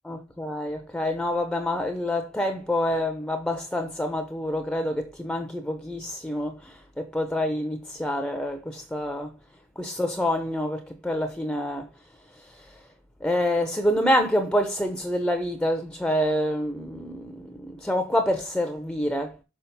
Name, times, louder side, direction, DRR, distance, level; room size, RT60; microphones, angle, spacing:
voice 1, 0.0-9.3 9.8-11.9 12.3-12.9 13.2-19.4, left 1 dB, 5° left, 0.7 m, -27 dB
6.1 x 6.0 x 4.2 m
head